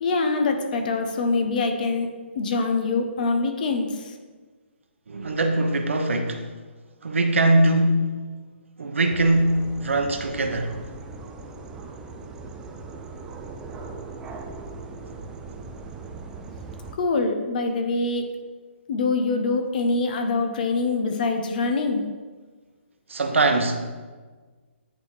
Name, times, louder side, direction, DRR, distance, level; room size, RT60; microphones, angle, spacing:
voice 1, 0.0-2.1 2.4-4.1 17.0-18.2 18.9-22.0, left 3 dB, 45° left, 0.8 m, -24 dB
voice 2, 5.1-6.5 7.0-8.2 8.8-10.8 23.1-23.8, right 2 dB, 85° right, 0.9 m, -22 dB
sound 1, 9.1-16.9, right 4 dB, 10° right, 0.3 m, -39 dB
9.2 x 4.2 x 3.3 m
hypercardioid pair, 160°, 7 cm